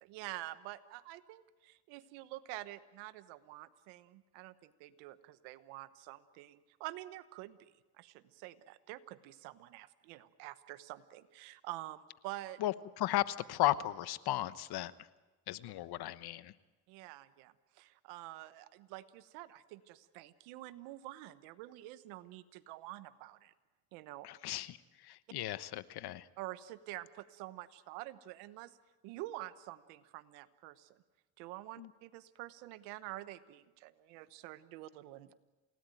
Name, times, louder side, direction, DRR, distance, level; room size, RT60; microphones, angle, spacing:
voice 1, 0.0-12.6 16.9-23.5 23.9-24.3 26.4-28.8 29.0-31.0 31.4-35.3, right 16 dB, 90° right, 13 dB, 1.2 m, -48 dB
voice 2, 12.6-14.9 15.5-16.5 24.2-26.3 31.8-31.9, left 14 dB, 65° left, 15 dB, 1.1 m, -35 dB
28.5 x 18.0 x 9.1 m, 1.2 s
supercardioid pair, 85°, 41 cm